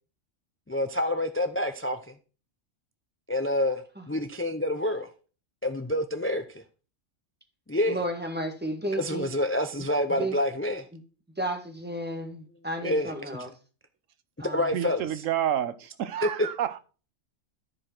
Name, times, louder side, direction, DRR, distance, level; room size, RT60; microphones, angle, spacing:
voice 1, 0.7-2.0 3.3-5.1 5.6-6.6 7.7-8.0 8.9-10.8 12.8-13.5 14.4-15.2 16.2-16.5, left 1 dB, 15° left, 0.4 m, -28 dB
voice 2, 7.9-9.3 9.8-10.4 10.9-11.0 11.4-13.5 14.4-14.7, right 1 dB, 10° right, 1.5 m, -33 dB
voice 3, 14.7-16.8, right 10 dB, 80° right, 1.1 m, -29 dB
14.0 x 4.9 x 4.4 m
omnidirectional pair, 1.3 m